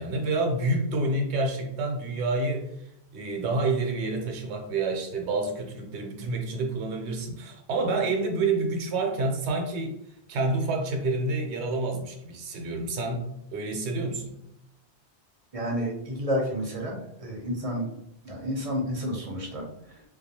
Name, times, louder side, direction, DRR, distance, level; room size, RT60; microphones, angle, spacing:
voice 1, 0.0-9.9 10.3-14.4, right 2 dB, 75° right, 2 dB, 0.9 m, -28 dB
voice 2, 15.5-17.9 18.2-20.0, equal, 40° right, -1 dB, 0.6 m, -30 dB
2.3 x 2.2 x 2.7 m, 0.79 s
omnidirectional pair, 1.2 m